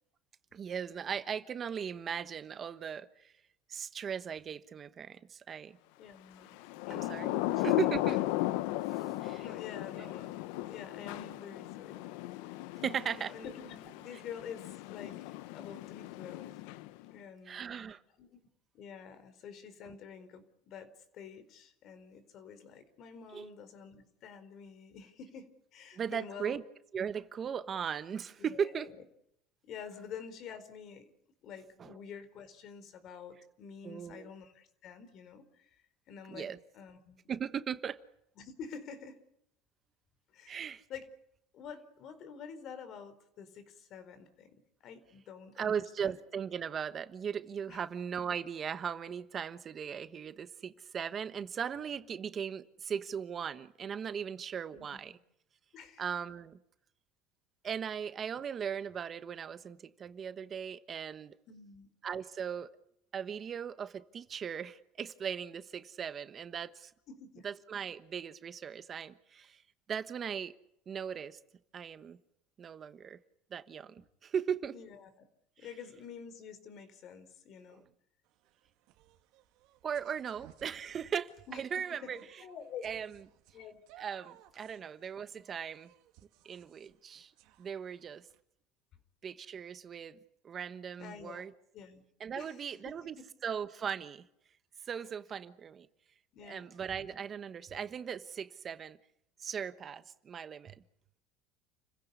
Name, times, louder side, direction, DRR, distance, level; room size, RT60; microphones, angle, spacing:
voice 1, 0.5-3.3 3.7-5.8 6.9-7.4 7.6-8.2 9.2-9.4 10.0-10.1 12.8-13.3 17.5-18.0 23.3-23.5 25.9-26.6 26.9-28.9 31.8-31.9 33.8-34.3 36.3-36.6 37.3-38.0 40.5-40.8 45.6-55.1 56.0-56.6 57.6-61.3 62.0-62.7 63.1-66.9 67.4-69.6 69.9-70.5 70.9-71.4 71.7-72.2 72.6-73.2 73.5-74.7 77.7-77.8 79.8-82.2 82.8-83.1 84.0-85.9 86.4-87.3 87.6-88.3 89.2-90.2 90.4-91.5 92.2-93.2 93.4-94.2 94.9-95.9 96.4-99.0 99.4-100.7, right 7 dB, 35° right, 1.2 m, -38 dB
voice 2, 6.0-6.6 6.9-7.5 9.4-10.3 10.6-12.1 13.1-16.6 17.1-17.9 18.2-18.4 18.7-26.6 28.4-28.9 29.7-31.1 31.4-35.7 36.1-37.2 38.4-39.2 40.3-40.6 40.9-41.1 41.5-44.5 44.8-45.8 46.0-46.1 47.7-47.8 54.7-55.2 55.7-56.0 61.5-61.9 67.1-67.5 74.7-75.1 75.6-77.8 81.5-81.6 81.9-82.8 83.5-83.8 91.0-91.5 91.7-92.0 92.3-93.0 96.3-96.7, left 7 dB, 50° left, 4.5 m, -48 dB
Thunder / Rain, 6.6-17.1, left 17 dB, 80° left, 0.9 m, -36 dB
sound 1, 78.3-88.4, right 14 dB, 70° right, 2.4 m, -61 dB
30.0 x 16.0 x 8.4 m
supercardioid pair, 125°, 0 cm